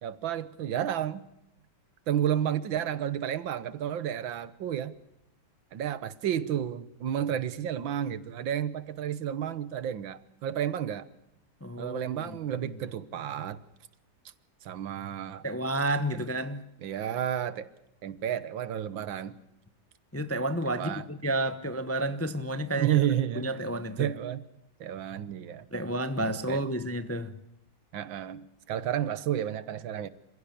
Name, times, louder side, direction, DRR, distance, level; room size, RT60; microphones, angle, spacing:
voice 1, 0.0-1.2 2.1-4.9 5.7-11.1 11.8-13.6 14.6-15.4 16.1-16.2 16.8-17.7 18.0-19.4 20.7-21.0 22.8-23.5 24.0-24.4 24.8-25.7 26.2-26.6 27.9-30.1, right 10 dB, 85° right, 1.9 m, -31 dB
voice 2, 11.6-12.4 15.4-16.6 20.1-23.0 23.4-24.1 25.7-27.4, right 1 dB, 15° left, 0.5 m, -31 dB
28.0 x 16.0 x 8.5 m
omnidirectional pair, 2.0 m